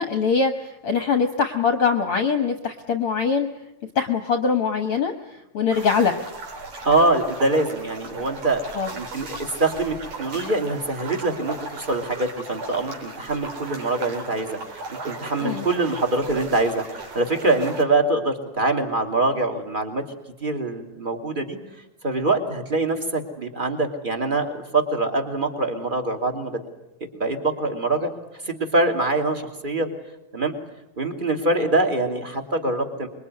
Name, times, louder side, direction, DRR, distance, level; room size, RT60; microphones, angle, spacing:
voice 1, 0.0-3.5 4.0-6.2 8.8-8.9 15.4-15.7, left 5 dB, 55° left, 6 dB, 1.9 m, -23 dB
sound 1, 5.7-17.8, right 3 dB, 75° right, 5.6 m, -37 dB
voice 2, 6.8-8.6 8.9-9.3 9.6-14.6 15.1-20.0 20.4-21.6 22.0-26.6 27.2-28.1 28.4-29.9 30.3-30.5 31.0-33.1, right 2 dB, 15° right, 4 dB, 2.6 m, -24 dB
26.5 x 23.0 x 9.8 m, 0.89 s
omnidirectional pair, 3.6 m